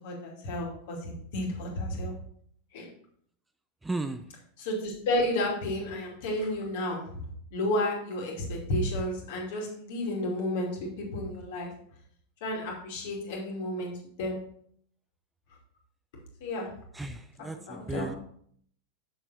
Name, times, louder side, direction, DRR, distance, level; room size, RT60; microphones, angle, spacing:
voice 1, 0.0-2.2 2.7-2.9 4.6-7.2 7.5-11.7 12.4-14.4 16.4-16.7 17.4-18.2, left 1 dB, 50° left, -1 dB, 2.6 m, -32 dB
voice 2, 3.8-4.2 16.9-18.1, right 2 dB, 10° right, 9 dB, 0.4 m, -35 dB
7.1 x 6.9 x 4.2 m, 0.63 s
figure-of-eight pair, 90°, 0 cm